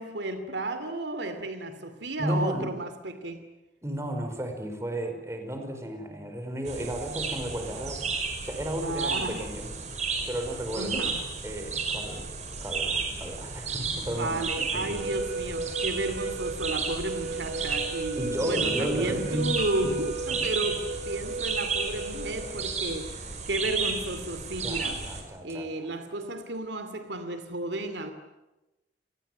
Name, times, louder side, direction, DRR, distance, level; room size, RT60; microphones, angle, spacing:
voice 1, 0.0-3.5 8.8-9.5 10.7-11.2 13.9-25.0 25.4-28.1, right 2 dB, 75° right, 9 dB, 2.6 m, -33 dB
voice 2, 2.2-2.7 3.8-8.0 8.4-9.7 10.3-11.1 11.4-12.4 12.6-15.0 18.2-19.6 19.8-19.9 20.3-20.5 22.4-22.5 24.6-25.7, equal, 15° right, 5 dB, 5.1 m, -33 dB
sound 1, 6.6-25.2, right 4 dB, 40° right, 5.3 m, -33 dB
sound 2, 14.7-22.5, right 4 dB, 60° right, 4.3 m, -35 dB
Piano, 19.6-21.6 22.2-22.9 23.2-23.3 23.5-23.6, left 1 dB, 60° left, 5.1 m, -47 dB
30.0 x 19.5 x 9.3 m, 1.0 s
head